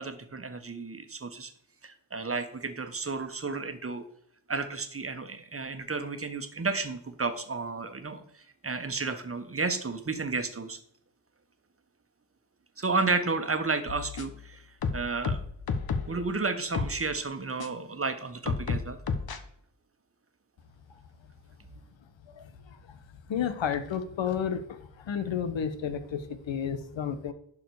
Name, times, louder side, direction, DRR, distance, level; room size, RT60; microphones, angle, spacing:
voice 1, 0.0-1.5 1.8-4.0 4.5-8.2 8.6-10.8 12.8-14.6 14.9-15.4 16.1-19.0, right 3 dB, 30° right, 9 dB, 1.3 m, -32 dB
sound 1, 13.9-14.4 14.8-16.2 16.7-17.0 17.6-17.7 18.5-19.4, left 5 dB, 50° left, 1.2 m, -31 dB
voice 2, 23.3-27.3, left 7 dB, 75° left, 10 dB, 1.2 m, -31 dB
11.0 x 4.9 x 4.8 m, 0.69 s
cardioid pair, 60°, 45 cm